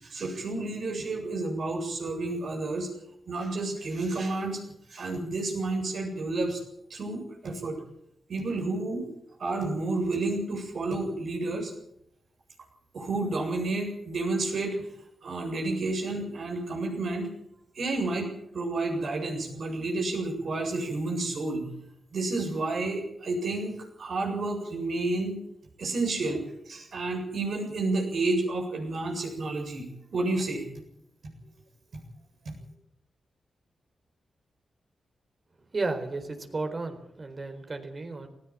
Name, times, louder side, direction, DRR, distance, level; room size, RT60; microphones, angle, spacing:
voice 1, 0.0-2.9 3.3-4.6 4.9-6.6 6.9-7.8 8.3-9.1 9.4-11.7 12.9-14.8 15.2-17.3 17.7-21.7 22.1-25.4 25.8-30.7 32.4-32.5, right 2 dB, 70° right, 2 dB, 7.7 m, -30 dB
voice 2, 35.7-38.3, right 3 dB, 45° right, 7 dB, 4.1 m, -33 dB
18.5 x 16.0 x 9.0 m, 0.78 s
cardioid pair, 60°, 0 cm